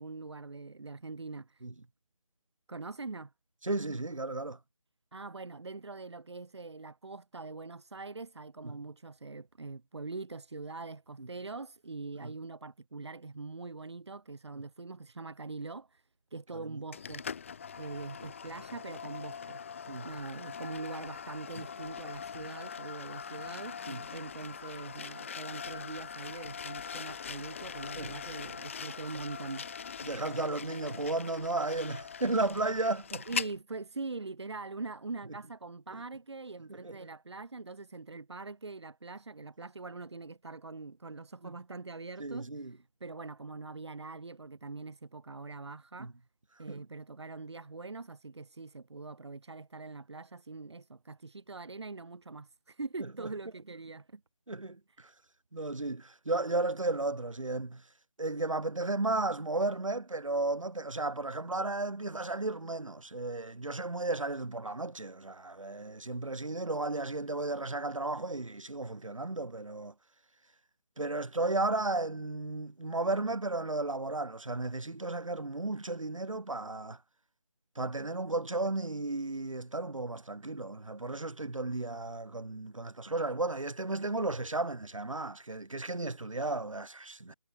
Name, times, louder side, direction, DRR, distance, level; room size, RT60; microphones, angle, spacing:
voice 1, 0.0-1.9 2.7-3.3 5.1-16.0 16.3-17.3 17.8-19.6 20.0-29.7 33.3-46.1 46.6-54.2, right 3 dB, 55° right, 3.0 m, -43 dB
voice 2, 3.6-4.6 8.6-8.8 11.2-11.3 12.2-12.3 19.9-20.1 23.9-24.0 27.9-28.1 30.0-33.2 36.7-37.0 41.4-41.5 42.2-42.8 46.0-46.1 46.7-46.8 54.5-55.1 55.5-57.8 58.2-69.9 71.0-77.0 77.8-87.3, right 2 dB, 75° right, 5.4 m, -34 dB
sound 1, 16.9-33.6, left 7 dB, 25° left, 2.0 m, -42 dB
figure-of-eight pair, 170°, 17 cm